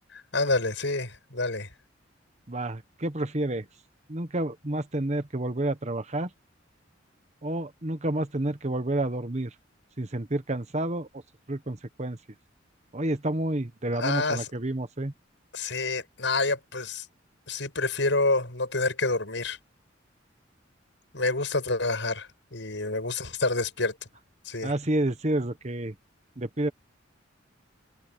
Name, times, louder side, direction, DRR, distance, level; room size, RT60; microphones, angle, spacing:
voice 1, 0.3-1.7 13.9-14.5 15.5-17.1 17.5-19.6 21.1-23.9 24.5-24.7, left 3 dB, 75° left, 7.0 m, -28 dB
voice 2, 2.5-3.7 4.1-6.3 7.4-9.5 10.0-11.1 11.5-12.2 12.9-15.1 24.6-25.9 26.4-26.7, right 1 dB, 35° right, 1.3 m, -29 dB
head